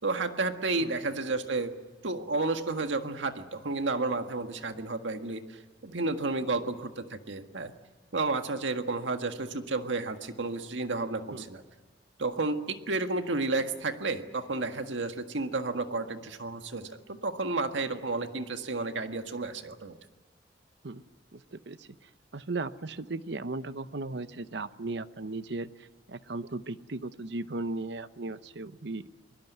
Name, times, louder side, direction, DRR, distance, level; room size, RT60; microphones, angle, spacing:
voice 1, 0.0-1.7 2.0-7.7 8.1-11.6 12.2-20.0, right 3 dB, 90° right, 7 dB, 1.7 m, -31 dB
voice 2, 21.3-29.1, right 2 dB, 65° right, 13 dB, 0.9 m, -37 dB
24.5 x 20.5 x 9.3 m, 1.3 s
head